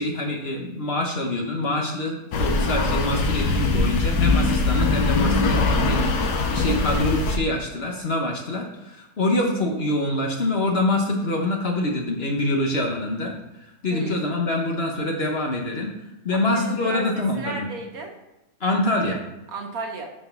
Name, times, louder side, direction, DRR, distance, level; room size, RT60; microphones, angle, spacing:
voice 1, 0.0-6.2 6.5-13.3 13.8-15.9 16.2-17.7 18.6-19.2, left 1 dB, 45° left, 0 dB, 0.9 m, -25 dB
sound 1, 2.3-7.4, left 3 dB, 75° left, 1.3 m, -21 dB
voice 2, 13.9-14.3 16.3-18.1 19.5-20.1, right 3 dB, 60° right, 3 dB, 1.2 m, -34 dB
5.5 x 4.4 x 5.8 m, 0.96 s
omnidirectional pair, 1.8 m